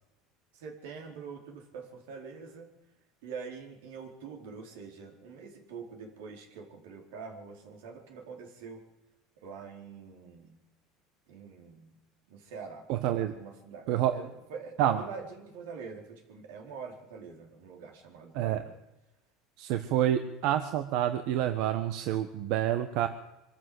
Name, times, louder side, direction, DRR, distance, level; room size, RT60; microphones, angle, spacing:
voice 1, 0.5-2.7 3.2-8.8 9.4-10.6 11.3-12.0 12.3-12.8 13.3-18.8, right 5 dB, 90° right, 2 dB, 4.6 m, -45 dB
voice 2, 12.9-13.3 13.9-14.2 14.8-15.0 18.3-18.6 19.6-23.1, right 11 dB, 65° right, 8 dB, 1.3 m, -28 dB
24.0 x 13.5 x 8.0 m, 0.99 s
supercardioid pair, 135°, 0 cm